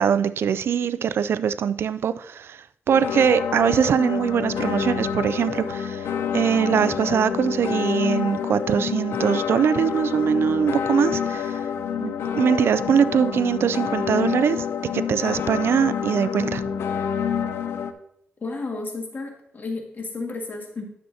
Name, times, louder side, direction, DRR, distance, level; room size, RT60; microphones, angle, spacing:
voice 1, 0.0-11.6 12.0-14.7 14.9-16.7, right 7 dB, 75° right, 0.4 m, -22 dB
sound 1, 2.9-17.9, left 7 dB, 90° left, 0.6 m, -28 dB
voice 2, 18.4-20.8, left 3 dB, 50° left, 1.9 m, -32 dB
11.0 x 6.9 x 2.8 m
cardioid pair, 80°, 4 cm